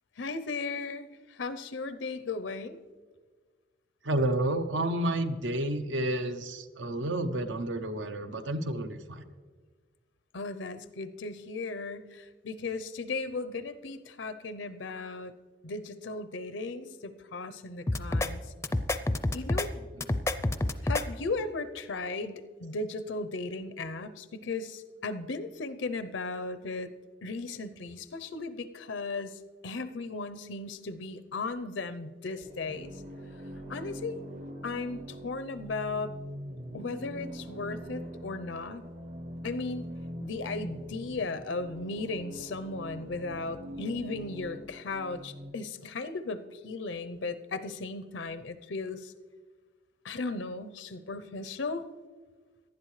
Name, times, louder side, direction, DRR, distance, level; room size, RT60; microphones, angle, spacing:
voice 1, 0.2-2.8 10.3-15.3 15.6-18.4 19.3-19.7 20.8-26.9 27.2-32.9 33.7-34.2 34.6-36.2 36.7-38.8 39.4-39.9 40.2-49.1 50.0-51.8, left 3 dB, 85° left, 11 dB, 0.7 m, -36 dB
voice 2, 4.0-9.2 20.0-20.1, right 1 dB, 85° right, 9 dB, 0.8 m, -30 dB
sound 1, 17.9-18.3 18.6-19.7 20.0-21.0, left 2 dB, 15° left, 0.4 m, -28 dB
sound 2, 32.4-45.5, equal, 45° right, 0.8 m, -43 dB
18.0 x 11.5 x 3.2 m, 1.4 s
head